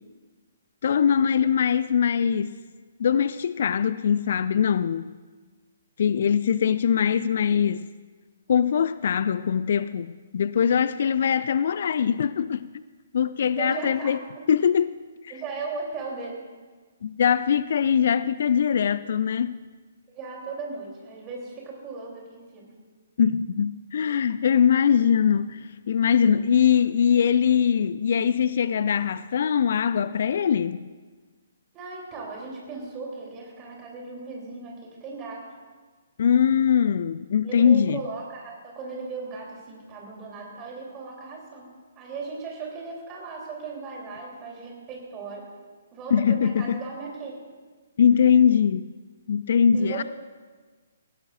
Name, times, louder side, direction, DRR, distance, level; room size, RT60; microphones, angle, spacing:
voice 1, 0.8-2.6 3.0-5.1 6.0-7.9 8.5-12.7 13.1-14.2 14.5-14.9 15.2-15.3 17.0-19.6 23.2-30.9 36.2-38.0 46.1-46.8 48.0-48.9 49.3-50.0, left 7 dB, 50° left, 0.3 m, -22 dB
voice 2, 13.6-14.4 15.3-16.4 20.1-22.7 31.7-35.4 37.4-41.7 41.9-45.4 45.9-47.3 49.7-50.0, right 4 dB, 20° right, 3.3 m, -37 dB
19.0 x 16.0 x 2.6 m
figure-of-eight pair, 130°, 0 cm